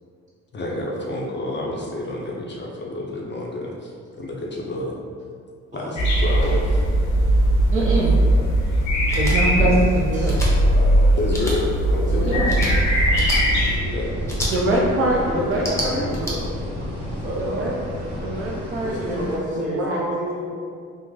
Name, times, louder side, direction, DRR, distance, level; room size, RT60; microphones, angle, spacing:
voice 1, 0.5-3.9 4.2-5.0 5.7-6.8 8.7-9.1 9.6-9.7 11.2-11.7 12.1-12.3 13.9-14.1 18.3-18.4, left 1 dB, 40° left, -3 dB, 0.5 m, -29 dB
sound 1, 6.0-13.8, right 1 dB, 85° left, 0.8 m, -19 dB
voice 2, 7.7-8.2 9.1-10.4 12.2-12.6 14.5-16.0 17.4-17.7 18.2-19.2 19.7-20.0, right 1 dB, 45° right, -3 dB, 0.5 m, -23 dB
sound 2, 9.1-9.4 10.2-10.5 11.3-11.6 12.5-12.7 13.1-13.4 14.3-14.5 15.5-16.3, equal, 10° left, 0.8 m, -28 dB
voice 3, 10.1-10.9 11.9-12.5 13.7-14.3 15.2-16.5 17.2-17.7 18.8-20.5, equal, 25° right, -7 dB, 1.1 m, -31 dB
sound 3, 12.1-19.4, equal, 85° right, 1.0 m, -32 dB
3.1 x 2.0 x 3.5 m, 2.2 s
cardioid pair, 90°, 30 cm